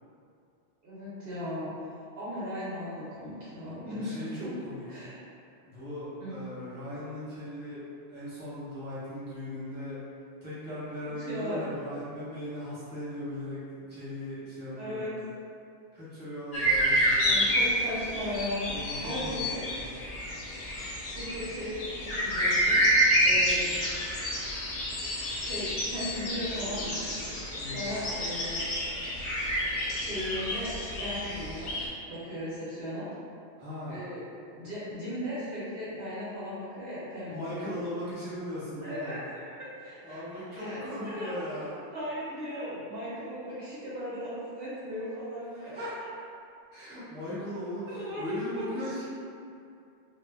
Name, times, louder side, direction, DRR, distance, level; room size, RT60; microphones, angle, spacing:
voice 1, 0.8-4.5 4.9-5.2 6.2-6.4 11.2-11.6 14.7-15.1 17.2-19.6 21.1-22.8 23.2-23.7 25.4-27.0 27.6-28.7 29.9-31.7 32.1-33.1 33.9-34.2 34.5-37.8 38.8-40.8 41.0-45.9 47.9-49.0, equal, 60° right, -10 dB, 0.8 m, -37 dB
voice 2, 3.8-5.0 5.6-7.8 8.1-10.0 10.4-13.6 13.9-15.0 15.9-17.5 18.7-19.9 23.1-23.3 27.6-27.9 33.6-34.0 37.3-39.2 40.0-41.9 45.6-45.9 46.7-49.0, left 1 dB, 10° right, -12 dB, 0.9 m, -38 dB
sound 1, 16.5-31.9, equal, 55° left, 0.4 m, -29 dB
2.1 x 2.0 x 3.4 m, 2.5 s
omnidirectional pair, 1.2 m